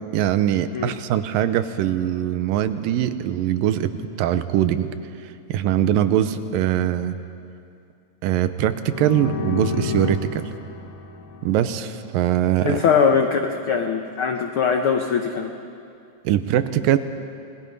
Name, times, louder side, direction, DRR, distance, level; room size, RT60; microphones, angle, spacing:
voice 1, 0.1-4.9 5.5-7.2 8.2-10.5 11.4-12.8 16.2-17.0, right 11 dB, 90° right, 11 dB, 2.5 m, -22 dB
sound 1, 8.8-12.5, left 5 dB, 65° left, 1.2 m, -31 dB
voice 2, 12.6-15.5, left 6 dB, 85° left, 4 dB, 1.1 m, -21 dB
28.0 x 20.0 x 5.4 m, 2.5 s
omnidirectional pair, 3.9 m